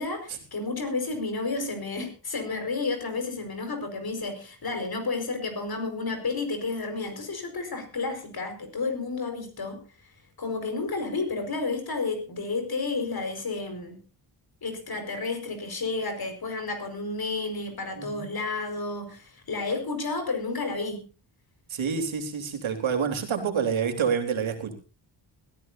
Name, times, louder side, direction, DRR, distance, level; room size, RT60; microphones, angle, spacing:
voice 1, 0.0-9.9 10.4-14.0 14.6-21.1, left 3 dB, 50° left, 7 dB, 5.0 m, -31 dB
voice 2, 17.9-18.3 21.7-24.7, right 6 dB, 75° right, 4 dB, 3.8 m, -28 dB
21.5 x 15.0 x 2.7 m, 0.34 s
wide cardioid pair, 120°, 47 cm